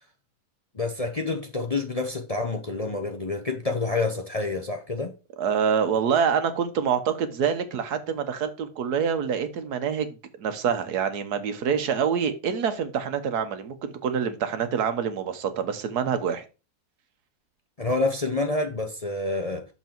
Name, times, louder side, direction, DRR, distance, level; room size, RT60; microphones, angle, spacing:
voice 1, 0.7-5.1 17.8-19.6, left 3 dB, 30° left, 0.7 m, -28 dB
voice 2, 5.4-16.4, right 7 dB, 85° right, 1.5 m, -26 dB
6.7 x 5.7 x 4.4 m
omnidirectional pair, 1.6 m